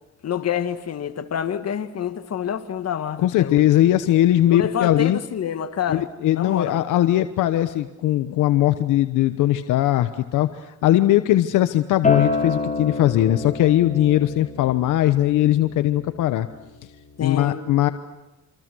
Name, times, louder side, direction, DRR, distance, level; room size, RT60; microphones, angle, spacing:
voice 1, 0.2-3.7 4.5-6.1 6.3-6.8 17.2-17.6, left 8 dB, 55° left, 2.0 m, -27 dB
voice 2, 3.2-5.2 5.9-10.5 10.8-16.5 17.2-17.9, left 13 dB, 90° left, 1.1 m, -19 dB
Acoustic guitar, 12.0-17.2, left 3 dB, 25° left, 5.0 m, -29 dB
27.0 x 26.5 x 6.3 m
cardioid pair, 90°, 30 cm